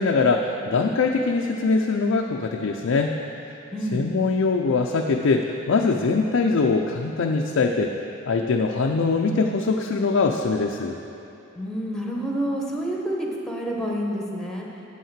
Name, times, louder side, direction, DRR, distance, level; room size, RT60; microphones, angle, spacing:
voice 1, 0.0-3.1 3.9-7.9 8.3-11.0, left 4 dB, 70° left, 2 dB, 0.5 m, -22 dB
voice 2, 3.7-4.0 11.5-14.7, equal, 5° left, -1 dB, 1.0 m, -28 dB
8.0 x 5.6 x 7.4 m, 2.9 s
head